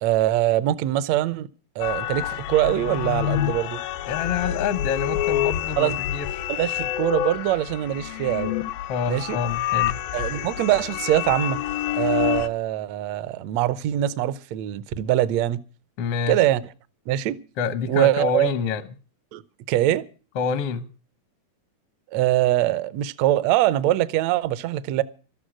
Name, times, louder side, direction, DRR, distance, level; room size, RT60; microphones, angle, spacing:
voice 1, 0.0-1.5 1.8-3.8 5.8-6.0 6.5-8.5 9.1-9.4 10.1-11.6 12.0-15.6 16.3-16.6 17.1-17.4 17.9-18.5 19.3-19.4 19.7-20.0 22.1-25.0, right 14 dB, 80° right, 1.5 m, -23 dB
sound 1, 1.8-12.5, left 12 dB, 85° left, 2.7 m, -27 dB
voice 2, 4.1-6.5 8.9-10.0 16.0-16.4 17.6-18.8 20.3-20.9, left 6 dB, 70° left, 1.4 m, -27 dB
13.5 x 13.0 x 6.2 m
omnidirectional pair, 4.1 m